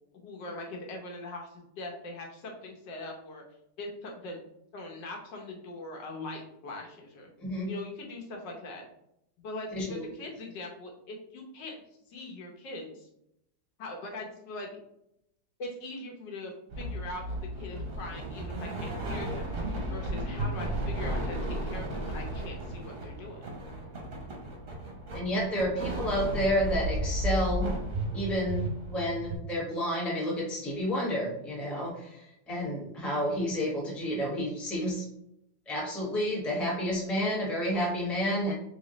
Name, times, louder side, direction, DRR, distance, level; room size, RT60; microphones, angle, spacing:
voice 1, 0.1-3.4 3.8-7.3 7.6-8.8 9.4-11.8 12.1-13.1 13.8-14.7 15.6-17.2 17.6-19.5 19.9-23.4, left 2 dB, 80° left, 1 dB, 1.6 m, -41 dB
voice 2, 9.7-10.0 25.1-27.7 28.1-35.1 35.7-38.5, equal, ahead, -4 dB, 0.7 m, -30 dB
sound 1, 16.7-29.4, right 1 dB, 45° right, 0.9 m, -34 dB
3.6 x 3.1 x 3.8 m, 0.80 s
omnidirectional pair, 1.9 m